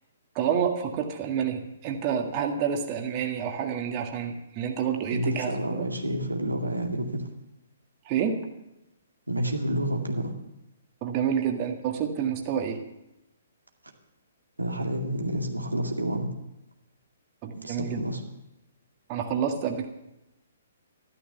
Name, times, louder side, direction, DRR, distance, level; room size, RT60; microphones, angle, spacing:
voice 1, 0.4-5.8 8.1-8.5 11.0-12.8 17.4-18.0 19.1-19.9, right 8 dB, 35° right, 3 dB, 1.8 m, -28 dB
voice 2, 5.1-7.3 9.3-10.3 14.6-16.3 17.5-18.2, right 1 dB, 90° right, 2 dB, 2.2 m, -29 dB
13.5 x 12.5 x 6.9 m, 0.92 s
figure-of-eight pair, 125°, 0 cm